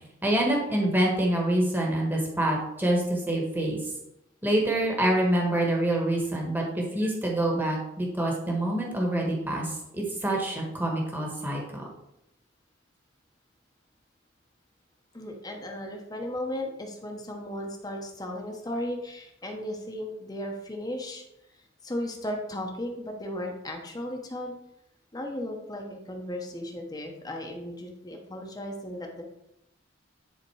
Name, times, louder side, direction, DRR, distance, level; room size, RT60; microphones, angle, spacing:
voice 1, 0.2-3.8 4.4-11.8, right 1 dB, 10° right, -1 dB, 1.4 m, -26 dB
voice 2, 15.1-21.2 21.8-24.5 25.1-29.2, left 1 dB, 20° left, 1 dB, 1.0 m, -35 dB
10.5 x 3.7 x 4.7 m, 0.84 s
head